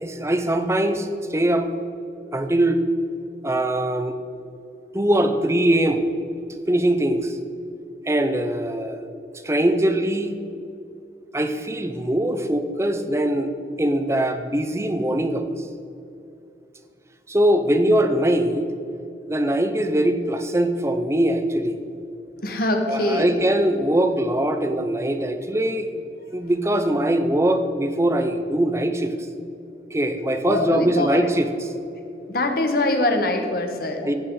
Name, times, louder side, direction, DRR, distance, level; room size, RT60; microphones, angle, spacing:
voice 1, 0.0-1.7 2.3-2.8 3.4-4.1 4.9-6.0 6.7-7.4 8.1-9.0 9.3-10.3 11.3-13.5 13.8-15.5 17.3-18.7 19.3-21.8 22.9-25.9 26.3-29.1 29.9-31.5 34.0-34.1, right 1 dB, 15° right, 8 dB, 0.7 m, -22 dB
voice 2, 22.4-23.4 30.4-31.3 32.3-34.1, left 2 dB, 55° left, 4 dB, 1.5 m, -23 dB
14.5 x 8.6 x 4.8 m, 2.7 s
head